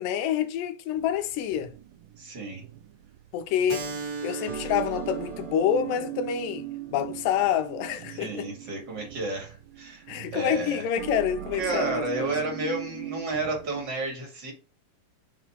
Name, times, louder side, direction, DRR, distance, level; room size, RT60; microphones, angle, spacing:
voice 1, 0.0-1.7 3.3-3.9 4.2-6.6 6.9-8.5 10.1-12.3, left 9 dB, 90° left, 2.3 m, -27 dB
sound 1, 1.0-13.8, right 14 dB, 80° right, 2.2 m, -40 dB
voice 2, 2.2-2.6 8.1-10.1 10.3-10.9 11.6-14.5, right 3 dB, 35° right, 2.4 m, -31 dB
Keyboard (musical), 3.7-8.8, right 4 dB, 60° right, 1.2 m, -40 dB
5.5 x 4.1 x 4.4 m
omnidirectional pair, 3.9 m